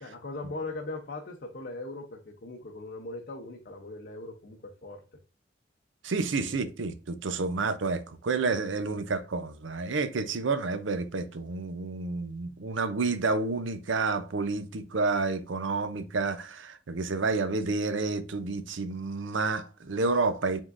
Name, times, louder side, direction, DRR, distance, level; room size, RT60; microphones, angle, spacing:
voice 1, 0.0-5.0 6.4-6.6, left 2 dB, 50° left, 0.7 m, -39 dB
voice 2, 6.0-20.6, right 3 dB, 70° right, 0.6 m, -30 dB
5.0 x 3.6 x 2.5 m
head